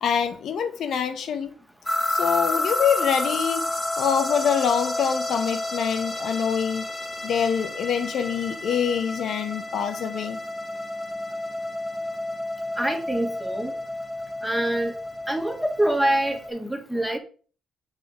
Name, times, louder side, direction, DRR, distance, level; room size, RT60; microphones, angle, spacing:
voice 1, 0.0-1.5 2.1-3.6 4.0-6.9 7.2-10.4, left 7 dB, 65° left, 0.7 m, -25 dB
sound 1, 1.9-16.5, left 1 dB, 15° left, 1.1 m, -30 dB
voice 2, 12.8-13.7 14.4-14.9 15.3-17.2, right 1 dB, 5° right, 1.4 m, -25 dB
7.3 x 3.4 x 5.2 m
cardioid pair, 90°, 0 cm